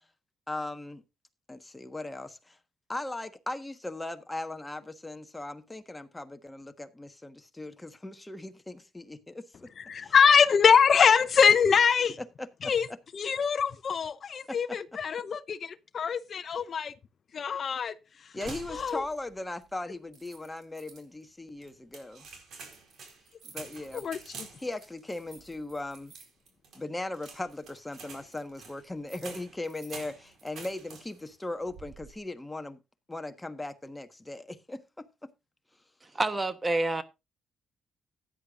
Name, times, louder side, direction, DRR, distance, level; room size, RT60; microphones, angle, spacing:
voice 1, 0.5-1.0 1.5-2.6 2.9-9.7 10.0-10.1 12.2-12.7 14.5-14.8 18.3-22.3 23.4-24.1 24.6-26.1 26.7-32.8 33.1-35.3, left 2 dB, 15° left, 1.3 m, -38 dB
voice 2, 9.8-12.2 12.6-12.9 13.1-16.9 17.3-17.9 18.2-18.3 18.7-19.0 23.9-24.5, left 6 dB, 50° left, 0.7 m, -24 dB
sound 1, 18.4-19.3 19.6-19.7 20.1-21.0 21.6-31.3 31.7-32.2, right 4 dB, 65° right, 4.5 m, -48 dB
voice 3, 36.1-37.0, right 2 dB, 25° right, 1.1 m, -27 dB
15.5 x 10.0 x 2.5 m
cardioid pair, 90°, 0 cm